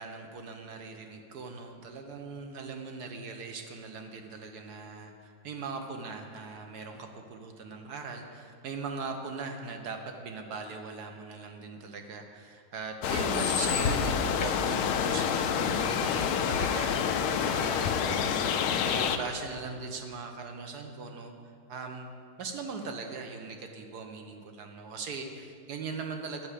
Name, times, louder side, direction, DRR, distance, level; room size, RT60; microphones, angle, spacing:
voice 1, 0.0-21.3 21.7-26.5, right 4 dB, 60° right, 5 dB, 1.1 m, -40 dB
sound 1, 13.0-19.2, left 7 dB, 85° left, 1.5 m, -28 dB
8.9 x 6.0 x 8.2 m, 2.2 s
omnidirectional pair, 2.3 m